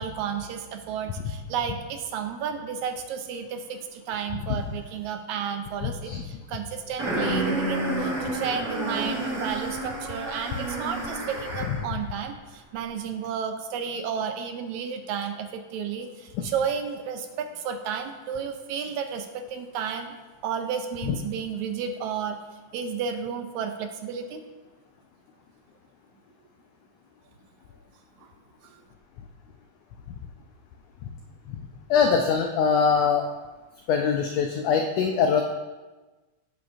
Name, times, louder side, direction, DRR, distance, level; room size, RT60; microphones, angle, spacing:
voice 1, 0.0-20.1 20.4-22.4 22.7-24.4, right 7 dB, 80° right, 6 dB, 1.9 m, -32 dB
voice 2, 5.8-6.2 16.4-16.5 21.0-21.2 31.9-33.2 33.9-35.4, left 6 dB, 85° left, 4 dB, 1.4 m, -23 dB
sound 1, 7.0-11.9, right 1 dB, 45° right, 3.9 m, -29 dB
9.4 x 8.4 x 2.5 m, 1.2 s
omnidirectional pair, 3.6 m